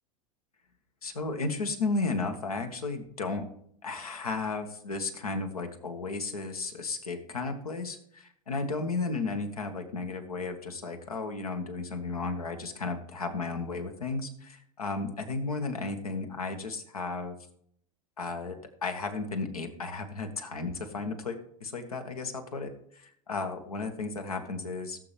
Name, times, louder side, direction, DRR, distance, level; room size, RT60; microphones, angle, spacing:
voice 1, 1.0-3.4 3.8-17.3 18.2-25.0, left 3 dB, 90° left, 5 dB, 1.7 m, -34 dB
17.0 x 7.8 x 3.5 m, 0.67 s
hypercardioid pair, 90°, 18 cm